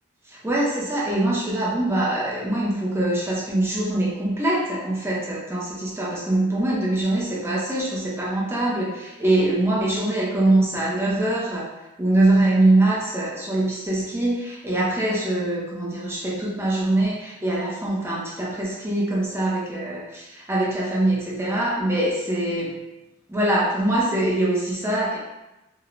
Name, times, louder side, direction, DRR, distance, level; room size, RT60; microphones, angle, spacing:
voice 1, 0.3-8.9 9.2-11.7 12.0-22.8 23.3-25.2, right 1 dB, 10° right, -6 dB, 0.5 m, -23 dB
3.0 x 2.1 x 2.4 m, 0.98 s
head